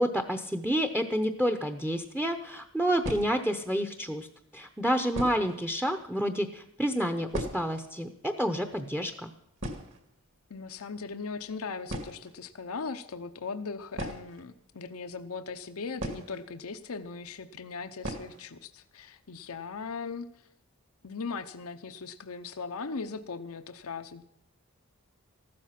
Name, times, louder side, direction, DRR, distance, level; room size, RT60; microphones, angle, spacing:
voice 1, 0.0-4.3 4.5-9.3, equal, 5° right, 7 dB, 0.8 m, -29 dB
sound 1, 2.1-2.2 3.0-3.7 4.5-4.6 5.1-5.7 5.9-6.0 6.3-6.5 6.8-7.9 8.2-8.3 8.6-8.8 9.2-9.3 9.6-10.5 11.4-11.5 11.9-12.4 13.9-15.0 16.0-16.8 17.1-17.2 18.0-18.5 18.8-18.9 19.3-19.4 19.8-20.1, right 1 dB, 55° right, 2.5 m, -38 dB
voice 2, 10.5-20.3 21.0-24.2, left 4 dB, 75° left, 9 dB, 0.8 m, -39 dB
15.0 x 13.0 x 5.9 m, 0.78 s
head